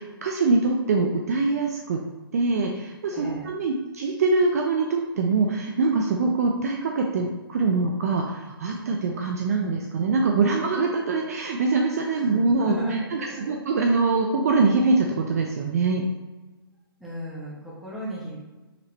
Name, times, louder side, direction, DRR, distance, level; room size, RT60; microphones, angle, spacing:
voice 1, 0.0-2.0 2.3-12.8 13.1-13.2 13.5-16.0, right 3 dB, 40° right, 1 dB, 0.4 m, -23 dB
voice 2, 3.1-3.5 12.1-13.7 17.0-18.4, right 1 dB, ahead, -8 dB, 0.9 m, -34 dB
5.0 x 3.1 x 3.1 m, 1.2 s
hypercardioid pair, 165°, 13 cm